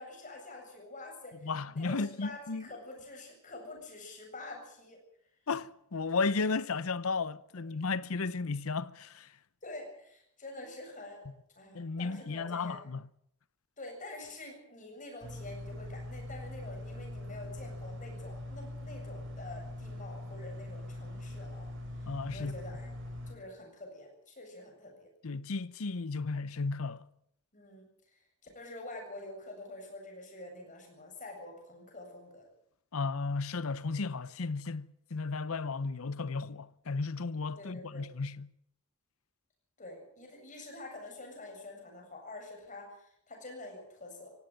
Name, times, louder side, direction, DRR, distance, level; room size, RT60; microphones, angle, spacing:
voice 1, 0.0-5.0 9.6-11.3 11.6-12.8 13.8-21.7 22.0-23.0 23.3-25.1 27.5-27.9 28.4-32.5 37.5-38.0 39.8-44.3, left 2 dB, 35° left, 7.6 m, -47 dB
voice 2, 1.4-2.7 5.5-9.3 11.7-13.1 22.1-22.5 25.2-27.1 32.9-38.5, left 4 dB, 70° left, 0.8 m, -34 dB
sound 1, 15.2-23.3, left 1 dB, 60° right, 5.0 m, -42 dB
17.5 x 17.0 x 9.2 m
head